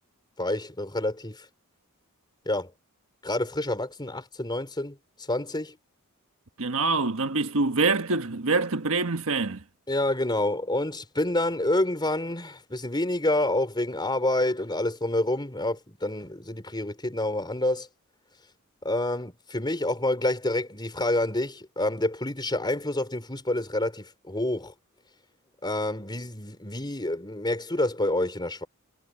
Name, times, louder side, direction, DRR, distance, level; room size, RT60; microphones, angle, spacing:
voice 1, 0.4-1.5 2.4-2.7 3.2-5.8 9.9-17.9 18.8-24.7 25.6-28.7, left 1 dB, 20° left, 4.4 m, -28 dB
voice 2, 6.6-9.6, right 3 dB, 65° right, 1.4 m, -25 dB
head